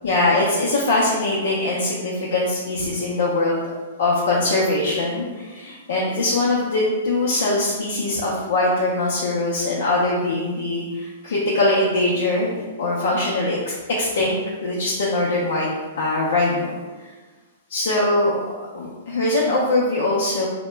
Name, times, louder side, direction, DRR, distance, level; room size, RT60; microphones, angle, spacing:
voice 1, 0.0-3.6 4.0-15.7 16.0-16.7 17.7-20.5, left 2 dB, 70° left, -5 dB, 0.6 m, -22 dB
2.8 x 2.1 x 3.3 m, 1.3 s
hypercardioid pair, 130°, 0 cm